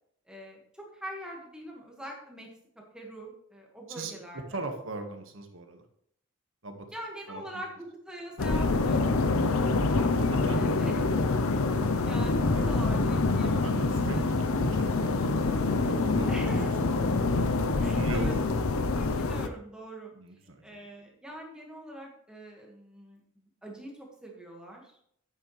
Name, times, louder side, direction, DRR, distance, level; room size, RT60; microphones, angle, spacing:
voice 1, 0.3-2.5 2.9-4.6 6.9-10.1 10.5-11.0 11.5-11.7 12.0-13.7 14.0-14.2 16.3-16.8 17.8-18.4 19.0-20.1 20.6-24.9, right 1 dB, 5° right, -1 dB, 1.6 m, -43 dB
voice 2, 4.5-5.8 6.6-6.9 7.3-7.6 10.2-10.7 11.1-12.3 13.3-16.6 16.8-16.9 17.7-18.3 20.1-20.7, right 2 dB, 70° right, 5 dB, 1.5 m, -40 dB
sound 1, 8.4-19.5, left 3 dB, 85° left, 0.7 m, -26 dB
10.0 x 8.5 x 3.2 m, 0.67 s
head